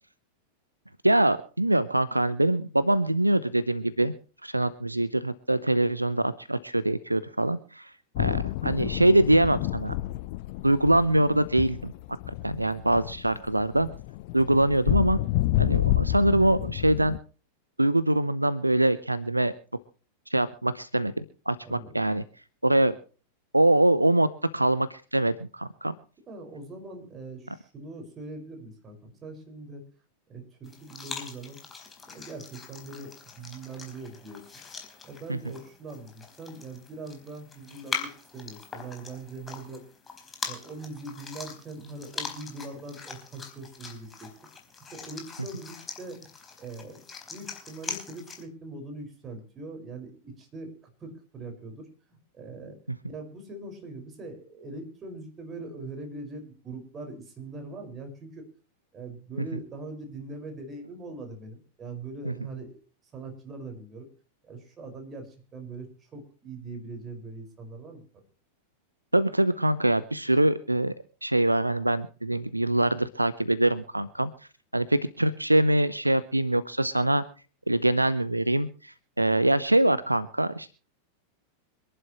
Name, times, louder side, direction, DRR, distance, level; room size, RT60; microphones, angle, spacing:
voice 1, 1.0-4.1 4.4-7.9 8.2-9.9 10.6-11.9 12.4-13.9 14.3-15.2 15.6-17.2 17.8-19.5 20.3-22.2 22.6-22.9 23.5-24.3 24.5-25.9 69.1-70.9 71.2-74.3 74.7-77.2 77.7-80.7, right 1 dB, 85° right, 16 dB, 0.8 m, -24 dB
sound 1, 8.2-17.2, left 16 dB, 45° left, 0.7 m, -29 dB
voice 2, 21.6-22.0 26.3-29.8 30.3-31.6 32.0-34.5 35.0-39.8 40.4-44.3 44.8-46.3 46.6-52.8 53.1-58.5 58.9-62.8 63.1-64.1 64.4-68.2, right 2 dB, 25° right, 4 dB, 5.3 m, -42 dB
sound 2, 30.6-48.4, left 5 dB, 15° left, 4.3 m, -42 dB
26.0 x 11.5 x 3.1 m, 0.36 s
figure-of-eight pair, 90°, 0 cm